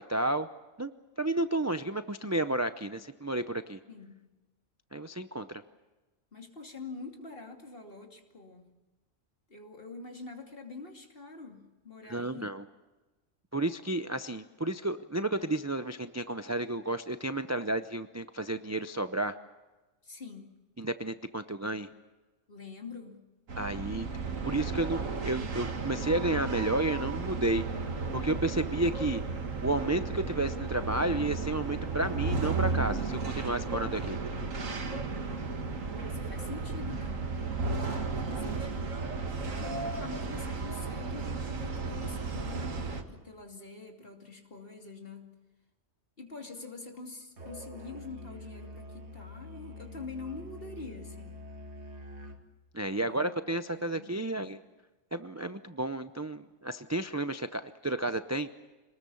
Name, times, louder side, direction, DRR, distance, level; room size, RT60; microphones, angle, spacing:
voice 1, 0.1-0.5 0.8-0.9 1.2-3.8 4.9-5.6 12.1-12.6 13.5-19.4 20.8-21.9 23.6-24.1 24.4-27.7 28.1-29.2 29.6-34.2 52.7-54.6 55.1-58.5, right 2 dB, 20° right, 10 dB, 0.5 m, -32 dB
voice 2, 3.9-4.2 6.3-8.7 9.5-12.5 20.0-20.6 22.5-23.2 35.9-37.3 38.2-39.0 39.4-45.3 46.2-51.4 52.9-53.3 53.9-54.6, left 3 dB, 45° left, 3 dB, 2.9 m, -45 dB
sound 1, 23.5-43.0, right 4 dB, 80° right, 2.0 m, -34 dB
Musical instrument, 47.4-52.5, left 2 dB, 60° right, 2.1 m, -45 dB
26.0 x 20.0 x 7.0 m, 1.2 s
omnidirectional pair, 1.3 m